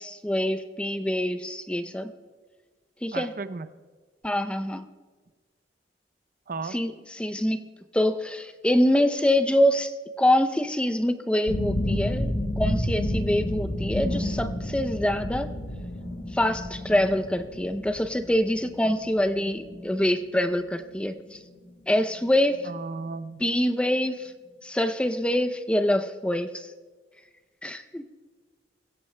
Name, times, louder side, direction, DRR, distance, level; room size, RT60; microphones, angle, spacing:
voice 1, 0.0-2.1 3.0-3.3 4.2-4.9 6.7-15.5 16.3-21.4 21.9-22.6 23.4-24.3 24.6-26.7 27.6-28.1, left 1 dB, 5° left, 9 dB, 0.5 m, -25 dB
voice 2, 3.1-3.7 6.5-6.8 22.6-23.4, right 4 dB, 55° right, 13 dB, 0.5 m, -34 dB
sound 1, 11.5-21.6 21.9-22.7 23.1-23.2, left 1 dB, 90° left, 1.8 m, -31 dB
24.0 x 16.0 x 2.2 m, 1.4 s
head